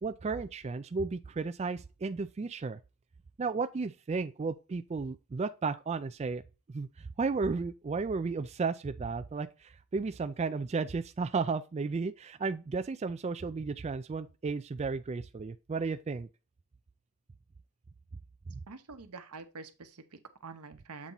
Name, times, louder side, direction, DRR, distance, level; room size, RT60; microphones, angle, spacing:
voice 1, 0.0-2.8 3.4-6.4 6.7-16.3, right 4 dB, 30° right, 0.3 m, -34 dB
voice 2, 18.7-21.1, right 4 dB, 90° right, 0.9 m, -47 dB
7.4 x 3.9 x 4.1 m
head